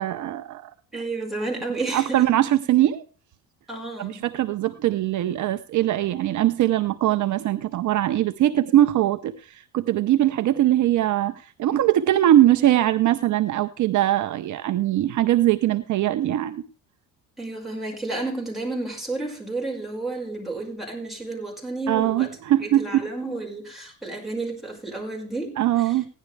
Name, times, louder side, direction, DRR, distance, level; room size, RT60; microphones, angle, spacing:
voice 1, 0.0-1.0 1.9-3.0 4.0-16.6 21.9-23.0 25.6-26.1, right 13 dB, 55° right, 10 dB, 0.8 m, -21 dB
voice 2, 0.9-2.2 3.7-4.2 17.4-22.3 22.6-26.0, right 2 dB, ahead, -2 dB, 5.5 m, -31 dB
16.5 x 11.0 x 3.3 m, 0.38 s
cardioid pair, 125°, 37 cm